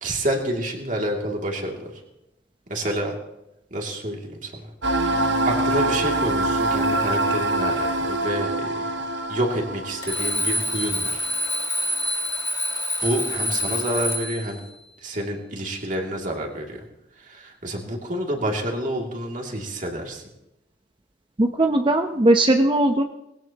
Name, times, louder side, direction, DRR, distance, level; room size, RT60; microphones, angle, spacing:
voice 1, 0.0-1.9 2.7-3.1 3.7-4.5 5.0-5.1 5.5-8.7 9.3-11.3 13.0-14.6 15.0-16.9 17.2-20.2, right 1 dB, 45° right, 1 dB, 2.6 m, -28 dB
sound 1, 4.8-11.2, right 2 dB, 75° right, 1.3 m, -25 dB
Alarm, 10.0-14.5, left 1 dB, 25° left, 3.6 m, -26 dB
voice 2, 21.4-23.0, right 1 dB, 25° right, 5 dB, 0.7 m, -19 dB
19.5 x 17.5 x 2.9 m, 0.90 s
head